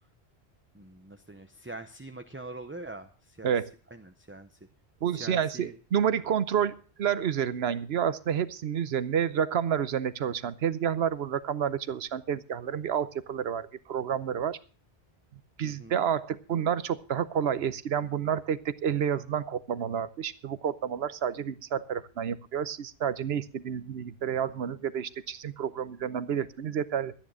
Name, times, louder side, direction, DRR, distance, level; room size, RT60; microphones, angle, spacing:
voice 1, 0.7-3.5 3.9-4.6 5.1-5.7 15.6-16.0, right 2 dB, 15° right, 7 dB, 0.6 m, -44 dB
voice 2, 5.0-14.6 15.3-27.1, right 8 dB, 75° right, 15 dB, 1.0 m, -29 dB
13.5 x 9.7 x 6.3 m, 0.39 s
omnidirectional pair, 1.1 m